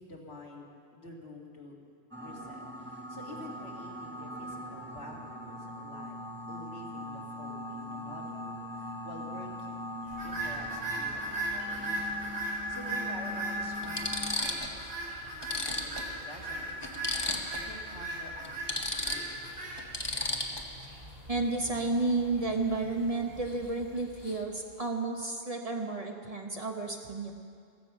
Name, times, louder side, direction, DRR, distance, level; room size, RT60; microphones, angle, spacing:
voice 1, 0.0-1.8 2.2-6.2 6.5-19.7, left 1 dB, 70° left, -2 dB, 2.5 m, -49 dB
sound 1, 2.1-14.4, left 1 dB, 10° right, 1.4 m, -41 dB
sound 2, 10.1-24.4, right 1 dB, 60° right, 4.7 m, -38 dB
sound 3, 10.9-11.1 12.6-12.7 13.3-13.4 13.8-14.8 15.1-15.2 15.4-17.7 18.0-18.1 18.4-20.9 23.5-23.7 24.0-24.4, left 2 dB, 25° left, 1.2 m, -35 dB
voice 2, 21.3-27.3, right 3 dB, 35° right, 2 dB, 1.2 m, -31 dB
15.0 x 15.0 x 6.1 m, 2.3 s
omnidirectional pair, 1.1 m